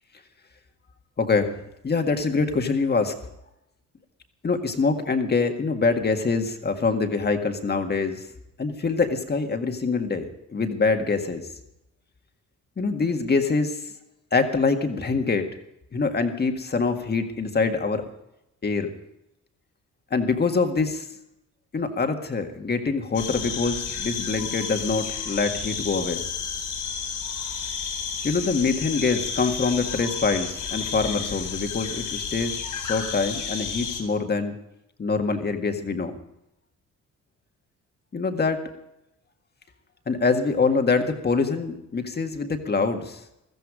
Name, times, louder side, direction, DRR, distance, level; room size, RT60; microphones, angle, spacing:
voice 1, 1.2-3.2 4.4-8.3 8.6-11.5 12.8-13.9 14.3-15.5 15.9-18.1 18.6-18.9 20.1-21.1 21.7-26.2 28.2-34.6 35.0-36.2 38.1-38.7 40.1-43.2, left 4 dB, 35° left, 5 dB, 1.8 m, -25 dB
sound 1, 23.1-34.0, left 6 dB, 75° left, 3.9 m, -31 dB
15.0 x 13.5 x 5.0 m, 0.86 s
cardioid pair, 90°, 30 cm